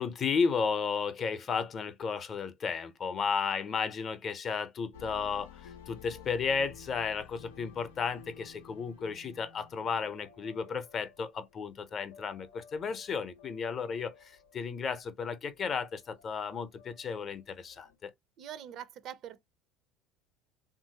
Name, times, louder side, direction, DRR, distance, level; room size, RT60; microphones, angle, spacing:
voice 1, 0.0-18.1, left 5 dB, 40° left, 0.6 m, -33 dB
sound 1, 4.9-17.9, left 7 dB, 90° left, 0.5 m, -54 dB
voice 2, 18.4-19.4, right 10 dB, 55° right, 0.5 m, -43 dB
3.1 x 2.5 x 2.8 m
supercardioid pair, 85°, 0 cm